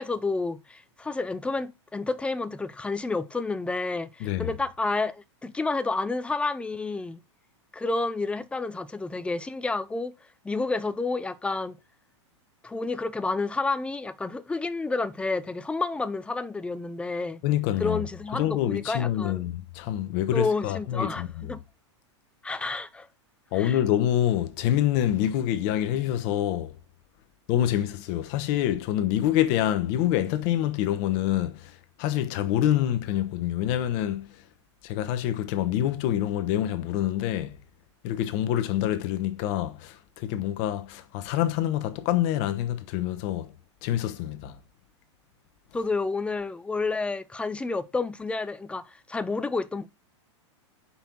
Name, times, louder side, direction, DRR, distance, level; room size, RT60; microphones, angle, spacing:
voice 1, 0.0-7.2 7.7-10.1 10.4-11.8 12.6-17.4 17.8-19.4 20.3-21.6 22.4-23.1 23.6-23.8 45.7-49.9, left 3 dB, 5° left, 0.5 m, -30 dB
voice 2, 4.2-4.5 17.4-18.0 18.3-21.6 23.5-26.7 27.5-34.4 34.8-37.6 38.0-43.5 43.8-44.6, left 12 dB, 50° left, 1.1 m, -26 dB
5.6 x 4.4 x 5.9 m
hypercardioid pair, 120°, 15 cm